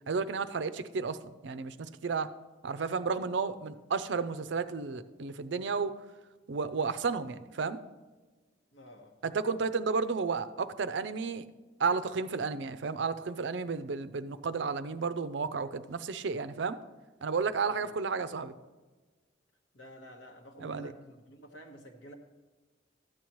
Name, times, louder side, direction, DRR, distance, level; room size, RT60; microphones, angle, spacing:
voice 1, 0.1-2.3 2.6-6.0 6.5-7.8 9.2-11.5 11.8-16.8 17.2-18.5 20.6-20.9, right 5 dB, 70° right, 12 dB, 0.5 m, -32 dB
voice 2, 8.7-9.3 17.7-17.9 19.7-22.1, right 1 dB, 80° left, 3 dB, 1.3 m, -50 dB
13.0 x 8.7 x 3.1 m, 1.3 s
head